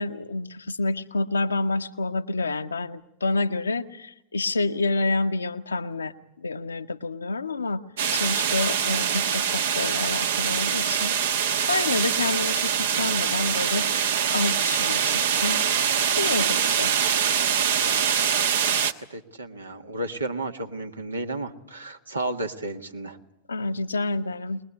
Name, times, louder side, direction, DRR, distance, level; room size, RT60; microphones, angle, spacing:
voice 1, 0.0-7.8 8.1-11.1 11.7-13.9 14.3-15.6 16.2-16.9 23.5-24.6, left 3 dB, 75° left, 9 dB, 1.0 m, -28 dB
sound 1, 8.0-18.9, right 8 dB, 60° right, 1.1 m, -24 dB
voice 2, 19.1-23.2, right 2 dB, 80° right, 5 dB, 1.7 m, -32 dB
23.5 x 20.5 x 8.2 m, 0.83 s
figure-of-eight pair, 90°, 0 cm